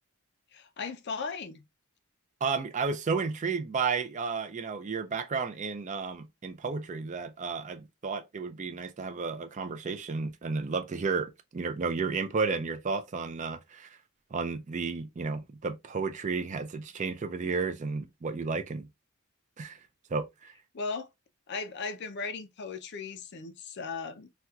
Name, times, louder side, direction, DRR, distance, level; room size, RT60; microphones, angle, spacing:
voice 1, 0.5-1.6 20.7-21.1 21.5-24.3, left 4 dB, 50° left, 0.5 m, -37 dB
voice 2, 2.4-14.0 14.3-18.9 19.6-19.8 20.1-20.5, right 4 dB, 35° right, 0.4 m, -32 dB
4.1 x 2.3 x 2.3 m
head